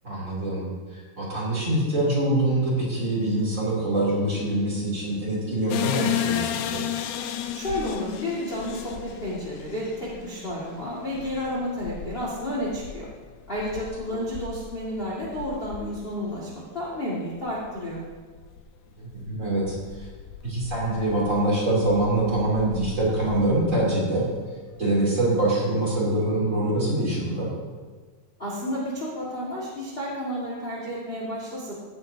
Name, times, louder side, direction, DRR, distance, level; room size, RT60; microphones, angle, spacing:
voice 1, 0.0-0.6 0.9-6.8 19.0-20.1 20.4-24.2 24.8-27.5, right 1 dB, 25° right, -7 dB, 3.0 m, -24 dB
sound 1, 5.7-16.5 16.9-17.0 17.5-17.7 18.0-18.6 19.1-23.8, left 10 dB, 80° left, 2.0 m, -34 dB
voice 2, 7.5-13.1 13.5-18.0 28.4-31.7, left 1 dB, 25° left, -5 dB, 1.5 m, -31 dB
16.5 x 9.7 x 2.8 m, 1.5 s
omnidirectional pair, 3.9 m